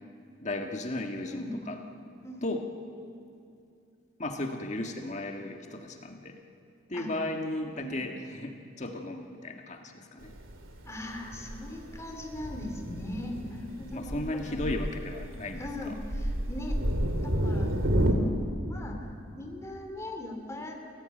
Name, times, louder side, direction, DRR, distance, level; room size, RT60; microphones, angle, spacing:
voice 1, 0.4-1.8 2.4-2.7 4.2-6.4 6.9-10.3 13.9-15.9, left 1 dB, 35° left, 4 dB, 1.7 m, -35 dB
voice 2, 1.3-1.6 2.2-2.5 6.9-7.1 7.8-8.1 10.9-14.6 15.6-16.8 17.2-17.7 18.0-19.0 19.4-20.8, left 1 dB, 15° left, 3 dB, 2.8 m, -39 dB
Thunder, 10.2-18.1, equal, 75° right, 2.5 m, -31 dB
27.5 x 17.0 x 9.1 m, 2.5 s
head